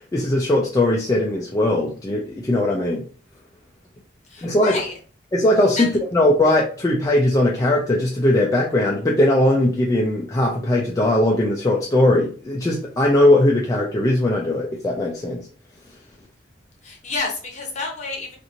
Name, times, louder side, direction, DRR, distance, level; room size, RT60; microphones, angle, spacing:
voice 1, 0.1-3.0 4.4-4.7 5.3-15.4, left 1 dB, 20° left, -3 dB, 0.3 m, -19 dB
voice 2, 4.3-5.0 5.8-6.0 16.8-18.4, left 3 dB, 40° left, 0 dB, 0.8 m, -29 dB
2.8 x 2.5 x 2.5 m, 0.41 s
head